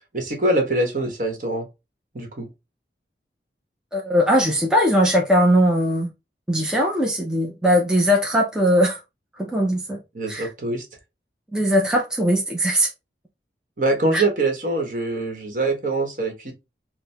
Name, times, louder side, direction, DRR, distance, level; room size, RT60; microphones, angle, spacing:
voice 1, 0.1-1.7 2.1-2.5 10.1-10.8 13.8-16.5, right 2 dB, 45° right, 1.0 m, -24 dB
voice 2, 3.9-6.1 6.5-9.0 9.4-10.0 10.3-10.5 11.5-12.9 14.1-14.2, equal, 5° right, 0.6 m, -20 dB
4.5 x 2.1 x 3.3 m
head